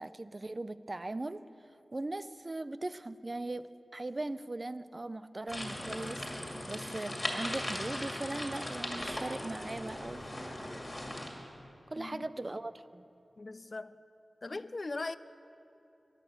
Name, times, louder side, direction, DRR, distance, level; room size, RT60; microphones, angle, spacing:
voice 1, 0.0-1.4 1.9-10.6 11.9-13.0, right 2 dB, 35° right, 0.4 m, -39 dB
sound 1, 5.5-11.3, left 1 dB, 25° left, 2.2 m, -38 dB
voice 2, 12.0-12.3 13.4-13.9 14.4-15.2, left 3 dB, 45° left, 0.3 m, -39 dB
12.0 x 11.0 x 7.6 m
wide cardioid pair, 95°, 0 cm